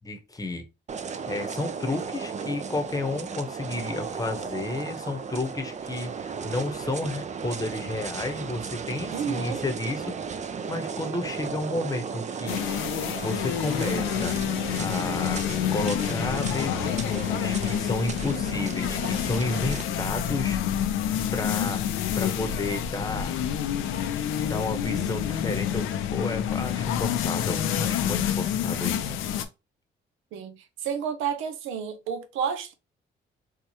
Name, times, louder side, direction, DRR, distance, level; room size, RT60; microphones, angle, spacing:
voice 1, 0.0-0.6 1.2-10.3 10.7-12.6 13.2-14.4 14.8-20.6 21.3-21.8 22.2-23.3 24.5-29.2, left 2 dB, 20° left, 0.9 m, -32 dB
sound 1, 0.9-19.8, right 6 dB, 35° right, 0.5 m, -35 dB
voice 2, 9.1-9.6 30.3-32.7, right 7 dB, 85° right, 0.7 m, -31 dB
sound 2, 12.5-29.4, left 9 dB, 90° left, 0.6 m, -28 dB
4.4 x 2.4 x 2.8 m
cardioid pair, 90°, 20 cm